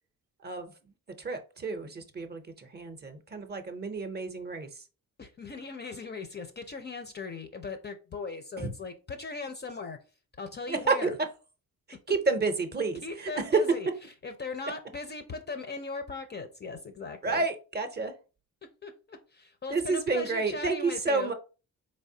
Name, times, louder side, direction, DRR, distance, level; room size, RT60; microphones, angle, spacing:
voice 1, 0.4-0.7 1.2-4.7 8.6-8.7 10.7-11.1 12.1-13.6 17.2-18.1 19.7-21.3, right 4 dB, 30° right, 0.6 m, -30 dB
voice 2, 5.2-10.0 10.4-11.2 13.0-13.9 14.2-17.4 18.8-21.3, left 4 dB, 30° left, 0.4 m, -39 dB
4.2 x 3.2 x 2.7 m
cardioid pair, 135°, 35 cm